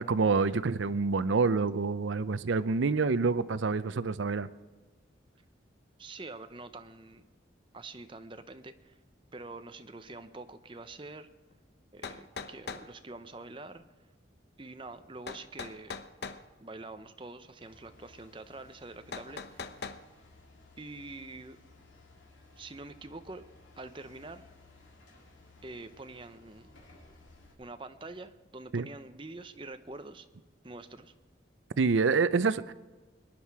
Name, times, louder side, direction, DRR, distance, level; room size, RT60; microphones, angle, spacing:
voice 1, 0.0-4.5 28.7-28.9 31.8-32.7, right 4 dB, 80° right, 16 dB, 0.6 m, -27 dB
voice 2, 6.0-7.2 7.7-9.0 9.3-11.3 11.9-13.8 14.6-16.0 16.6-19.7 20.8-21.6 22.6-23.5 23.8-24.4 25.6-26.8 27.6-30.3 30.6-31.1, right 2 dB, 25° right, 9 dB, 0.7 m, -45 dB
sound 1, 11.5-11.6 12.0-12.9 15.3-16.4 19.1-20.0, left 4 dB, 55° left, 0.8 m, -40 dB
sound 2, 17.6-27.5, left 3 dB, 85° left, 3.2 m, -58 dB
22.0 x 10.5 x 4.7 m, 1.3 s
head